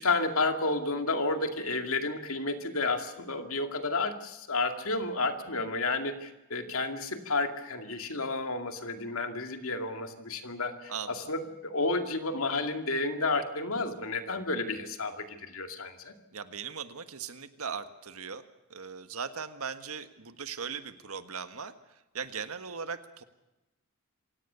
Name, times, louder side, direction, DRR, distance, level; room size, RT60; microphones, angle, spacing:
voice 1, 0.0-16.1, left 3 dB, 70° left, 6 dB, 2.3 m, -31 dB
voice 2, 10.9-11.3 16.3-18.4 18.7-21.7 22.1-23.2, right 6 dB, 75° right, 10 dB, 1.5 m, -39 dB
27.0 x 17.0 x 6.9 m, 0.98 s
head